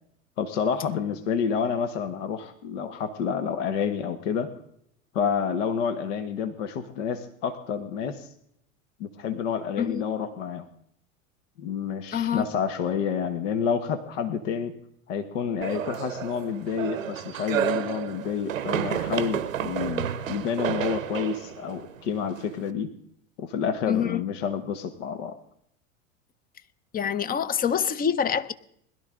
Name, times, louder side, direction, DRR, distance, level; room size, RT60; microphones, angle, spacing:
voice 1, 0.4-4.5 5.1-8.3 9.0-10.7 11.6-14.7 15.1-22.9 23.4-25.3, left 7 dB, 65° left, 1.3 m, -29 dB
voice 2, 12.1-12.4 23.9-24.2 26.9-28.5, left 8 dB, 20° left, 0.7 m, -26 dB
sound 1, 15.6-22.7, right 9 dB, 90° right, 0.9 m, -31 dB
21.0 x 12.0 x 3.7 m
hypercardioid pair, 90°, 39 cm